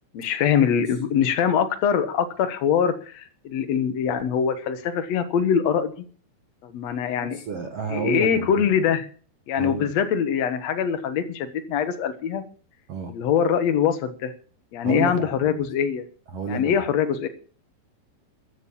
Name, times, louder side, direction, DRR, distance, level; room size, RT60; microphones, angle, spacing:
voice 1, 0.1-5.9 6.6-7.4 7.9-9.1 9.5-12.4 13.1-14.3 14.7-16.0 16.5-17.3, left 8 dB, 80° left, 8 dB, 1.5 m, -23 dB
voice 2, 7.2-8.7 9.6-9.9 12.9-13.1 14.8-15.6 16.3-16.8, right 4 dB, 85° right, 4 dB, 1.3 m, -31 dB
14.5 x 9.2 x 7.1 m, 0.41 s
omnidirectional pair, 5.1 m